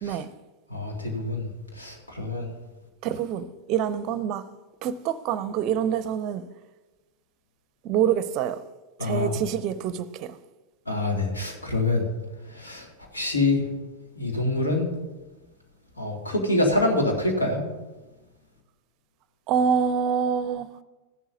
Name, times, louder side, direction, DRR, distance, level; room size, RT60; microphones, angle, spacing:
voice 1, 0.7-1.5 1.8-2.5 9.0-9.3 10.9-12.0 12.5-12.8 13.1-13.6 14.2-14.9 16.0-17.6, left 2 dB, 80° left, 2.1 m, -25 dB
voice 2, 3.0-4.4 4.8-6.4 7.8-8.6 9.0-10.4 19.5-20.7, right 8 dB, 40° right, 0.5 m, -26 dB
14.5 x 11.0 x 2.7 m
figure-of-eight pair, 90°, 0 cm